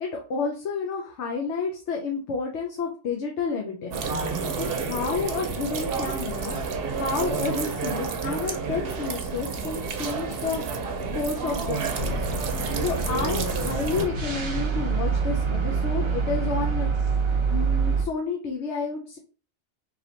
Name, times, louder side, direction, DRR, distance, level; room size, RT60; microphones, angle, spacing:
voice 1, 0.0-4.1 4.6-6.6 6.9-10.6 11.1-12.3 12.8-16.9 17.5-19.2, left 4 dB, 75° left, 1 dB, 0.9 m, -30 dB
sound 1, 3.9-14.0, right 5 dB, 60° right, 0.8 m, -30 dB
sound 2, 11.9-18.0, right 5 dB, 40° right, 0.4 m, -26 dB
3.2 x 2.9 x 3.9 m, 0.39 s
omnidirectional pair, 1.2 m